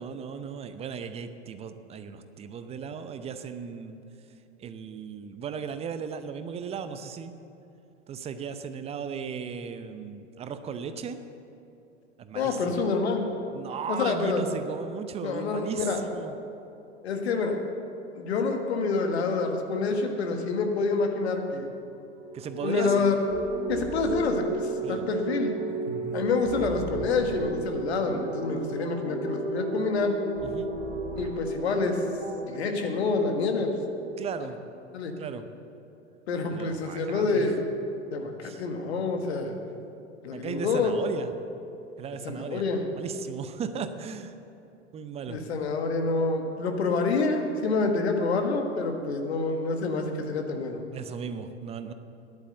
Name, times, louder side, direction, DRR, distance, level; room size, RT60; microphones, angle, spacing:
voice 1, 0.0-4.0 4.6-7.4 8.1-11.2 12.2-12.8 13.5-16.3 22.3-23.1 24.8-25.1 30.4-30.7 34.2-34.6 35.2-35.4 36.5-37.5 38.4-38.6 40.3-41.3 42.0-42.6 43.0-44.3 44.9-45.4 50.9-51.9, right 6 dB, 15° right, 10 dB, 0.6 m, -36 dB
voice 2, 12.3-13.2 13.9-14.4 15.2-16.0 17.0-17.6 18.1-21.7 22.6-23.1 23.7-25.5 26.1-30.2 31.1-32.0 32.5-33.7 34.9-35.1 36.3-37.6 38.1-39.5 40.2-40.9 42.2-42.8 45.3-50.8, left 4 dB, 65° left, 4 dB, 1.6 m, -27 dB
sound 1, 22.2-33.0, right 2 dB, 60° right, 1.9 m, -33 dB
10.5 x 8.4 x 7.9 m, 2.7 s
figure-of-eight pair, 90°, 35 cm